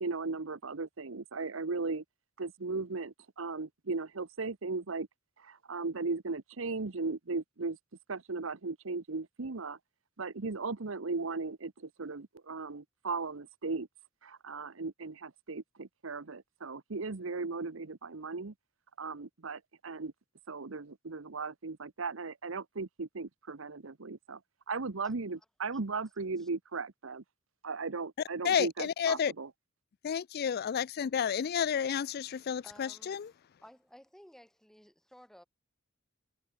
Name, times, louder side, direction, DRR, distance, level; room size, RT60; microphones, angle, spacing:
voice 1, 0.0-2.0 2.4-5.1 5.4-7.8 8.1-9.8 10.2-13.9 14.2-18.5 19.0-20.1 20.5-24.4 24.7-27.2 27.6-29.5, right 3 dB, 70° right, 1.0 m, -37 dB
voice 2, 28.4-29.3 30.0-33.3, left 7 dB, 50° left, 0.4 m, -31 dB
voice 3, 32.6-33.3 33.6-35.5, equal, ahead, 6.1 m, -56 dB
head